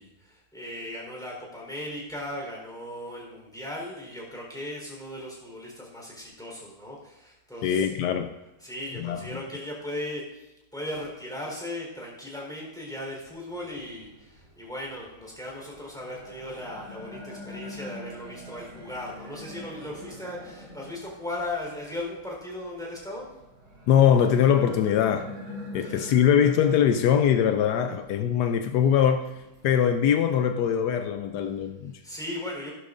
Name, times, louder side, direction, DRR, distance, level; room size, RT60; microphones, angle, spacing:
voice 1, 0.0-7.9 8.6-23.3 25.8-26.1 32.0-32.7, left 1 dB, ahead, 3.8 m, -37 dB
voice 2, 7.6-8.4 9.0-9.2 23.9-25.3 25.7-29.3 29.6-31.9, left 8 dB, 85° left, 0.9 m, -22 dB
sound 1, 13.5-31.7, left 1 dB, 65° right, 3.9 m, -45 dB
16.5 x 11.5 x 2.6 m
omnidirectional pair, 2.4 m